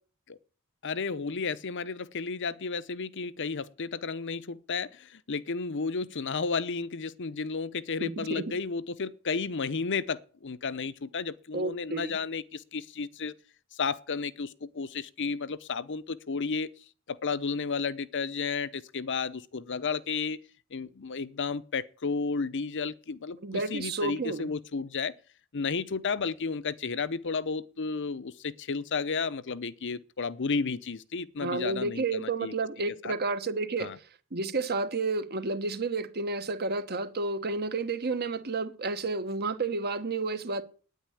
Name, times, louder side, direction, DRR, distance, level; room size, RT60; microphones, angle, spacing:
voice 1, 0.8-13.3 13.7-16.7 17.1-20.4 20.7-25.1 25.5-32.5 33.0-33.1 33.8-34.0, left 4 dB, 55° left, 0.8 m, -32 dB
voice 2, 8.0-8.4 11.5-12.1 23.4-24.5 31.4-33.9 34.3-40.6, right 3 dB, 50° right, 1.3 m, -31 dB
9.6 x 9.3 x 9.9 m
head